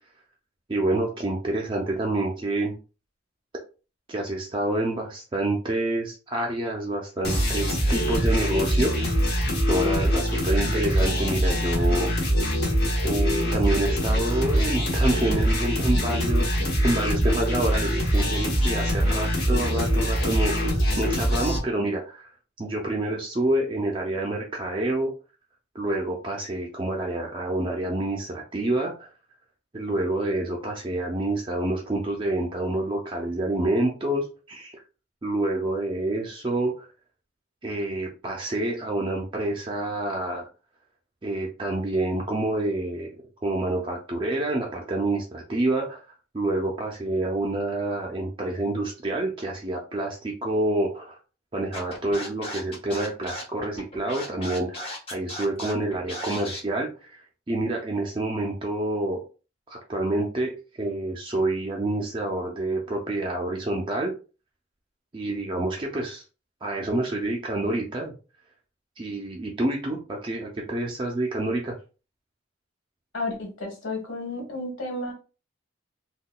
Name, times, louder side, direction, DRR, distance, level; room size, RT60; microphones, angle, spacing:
voice 1, 0.7-2.8 4.1-9.1 9.7-12.1 13.0-22.3 22.6-25.1 25.7-29.1 29.7-34.8 35.2-36.9 37.6-40.5 41.2-43.1 43.4-46.0 46.3-51.2 51.5-59.2 59.7-64.1 65.1-66.2 66.6-68.1 69.0-71.8, right 2 dB, 25° right, 0 dB, 0.4 m, -28 dB
sound 1, 7.2-21.6, equal, 55° left, 0.9 m, -23 dB
Scratching (performance technique), 51.7-56.6, left 1 dB, 30° left, 0.8 m, -36 dB
voice 2, 73.1-75.1, left 2 dB, 85° left, 1 dB, 1.3 m, -32 dB
3.7 x 2.2 x 2.2 m, 0.34 s
head